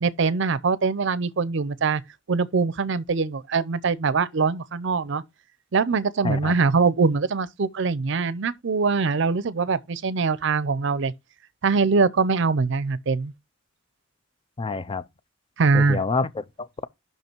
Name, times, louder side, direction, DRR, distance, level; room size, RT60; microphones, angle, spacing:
voice 1, 0.0-2.0 2.3-5.2 5.7-11.1 11.6-13.3 15.6-16.0, right 4 dB, 65° right, 0.6 m, -23 dB
voice 2, 14.6-15.0 15.7-16.8, left 3 dB, 25° left, 0.4 m, -28 dB
6.0 x 5.5 x 4.4 m
head